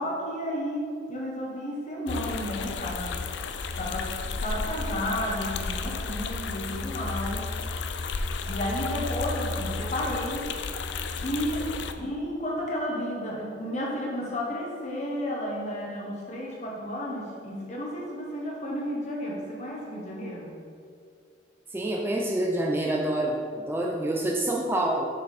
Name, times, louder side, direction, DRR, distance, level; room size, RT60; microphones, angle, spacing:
voice 1, 0.0-3.2 3.8-7.5 8.5-10.5 11.2-11.7 12.0-20.5, equal, 40° left, -2 dB, 1.4 m, -32 dB
sound 1, 2.1-11.9, left 4 dB, 75° left, 0.4 m, -32 dB
voice 2, 21.7-25.1, right 1 dB, 10° right, -1 dB, 0.4 m, -27 dB
6.7 x 5.6 x 4.2 m, 2.3 s
head